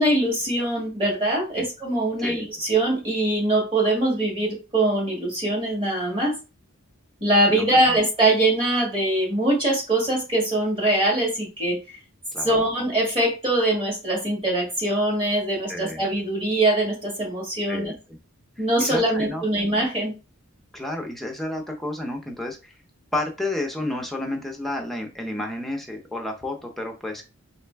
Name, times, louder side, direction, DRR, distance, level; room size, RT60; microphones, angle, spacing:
voice 1, 0.0-6.4 7.2-11.8 12.4-17.9 18.6-20.1, right 1 dB, 25° right, -2 dB, 1.9 m, -22 dB
voice 2, 7.5-8.0 12.3-12.6 15.7-16.0 17.7-17.9 18.6-19.7 20.7-22.7 23.1-27.2, left 1 dB, ahead, 1 dB, 0.6 m, -31 dB
4.2 x 3.2 x 3.4 m, 0.30 s
head